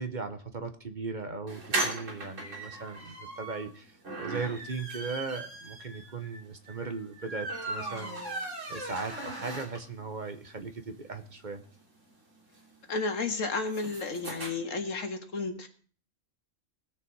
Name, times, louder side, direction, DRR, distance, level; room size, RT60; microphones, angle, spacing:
voice 1, 0.0-8.2 8.7-11.6, right 4 dB, 40° right, 8 dB, 1.1 m, -38 dB
sound 1, 1.5-10.1 10.4-10.5 10.8-10.9 11.1-14.5, right 2 dB, 75° right, 3.4 m, -38 dB
voice 2, 12.9-15.7, left 3 dB, 80° left, 6 dB, 2.0 m, -32 dB
20.0 x 6.8 x 4.7 m, 0.43 s
omnidirectional pair, 1.3 m